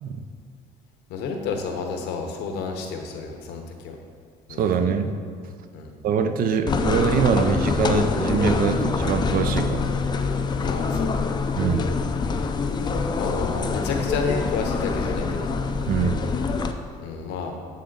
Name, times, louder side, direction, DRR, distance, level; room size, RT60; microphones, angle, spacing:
voice 1, 1.1-4.0 4.5-4.9 5.7-5.9 10.6-11.3 13.1-15.6 17.0-17.5, left 5 dB, 85° left, 3 dB, 0.8 m, -30 dB
voice 2, 4.6-5.1 6.0-9.9 11.6-11.9 15.9-16.2, right 6 dB, 60° right, 8 dB, 0.5 m, -23 dB
sound 1, 6.7-16.7, left 4 dB, 25° left, 0.4 m, -25 dB
7.6 x 3.7 x 3.8 m, 2.2 s
cardioid pair, 110°, 17 cm